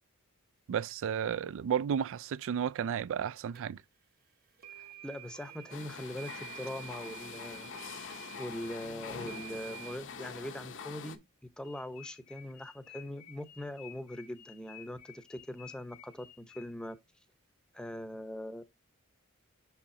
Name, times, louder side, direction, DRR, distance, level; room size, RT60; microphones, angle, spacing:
voice 1, 0.7-3.8, right 8 dB, 60° right, 0.3 m, -32 dB
sound 1, 3.6-3.7 4.6-10.0, right 12 dB, 45° right, 0.8 m, -49 dB
voice 2, 4.8-7.7 8.1-11.2 11.6-17.0 17.7-18.6, left 1 dB, 5° left, 0.7 m, -42 dB
sound 2, 5.7-11.2, left 6 dB, 60° left, 0.8 m, -45 dB
sound 3, 11.6-16.9, left 12 dB, 90° left, 1.0 m, -54 dB
6.4 x 5.7 x 2.6 m
head